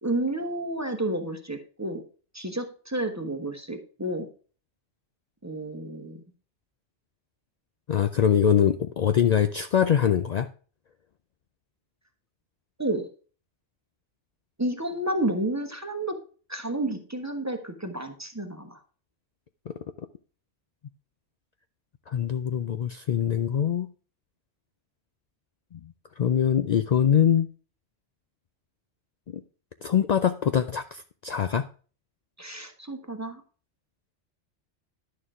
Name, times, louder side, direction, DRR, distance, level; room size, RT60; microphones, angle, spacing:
voice 1, 0.0-2.0 2.3-4.3 5.4-6.2 12.8-13.1 14.6-16.2 16.5-18.8 32.4-33.4, right 1 dB, 15° right, 6 dB, 0.9 m, -31 dB
voice 2, 7.9-10.5 19.7-19.8 22.1-23.9 25.7-25.8 26.2-27.5 29.3-29.4 29.8-31.7, left 8 dB, 75° left, 9 dB, 0.3 m, -23 dB
10.5 x 6.7 x 3.6 m, 0.38 s
omnidirectional pair, 1.2 m